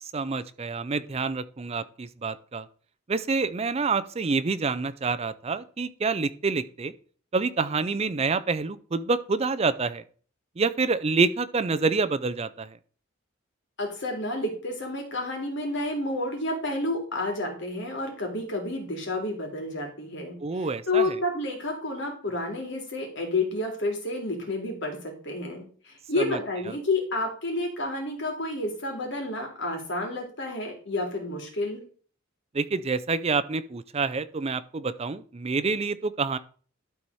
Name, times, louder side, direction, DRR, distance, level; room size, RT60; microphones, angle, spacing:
voice 1, 0.0-2.7 3.1-6.9 7.3-10.0 10.6-12.8 20.4-21.1 26.2-26.4 32.5-36.4, right 4 dB, 30° right, 13 dB, 0.4 m, -27 dB
voice 2, 13.8-31.8, left 2 dB, 60° left, 2 dB, 2.6 m, -30 dB
12.0 x 4.2 x 4.7 m, 0.44 s
head